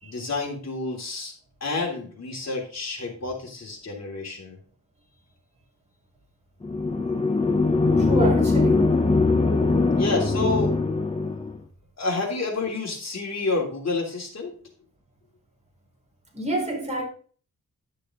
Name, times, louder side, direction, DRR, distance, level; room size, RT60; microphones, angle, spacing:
voice 1, 0.0-1.3 1.6-4.6 9.9-10.7 12.0-14.5, left 3 dB, 55° left, 3.3 m, -29 dB
sound 1, 6.6-11.6, left 3 dB, 20° left, 1.0 m, -21 dB
voice 2, 8.0-9.0 16.3-17.1, right 1 dB, 20° right, 4.2 m, -28 dB
11.5 x 6.7 x 3.8 m
wide cardioid pair, 110°, 32 cm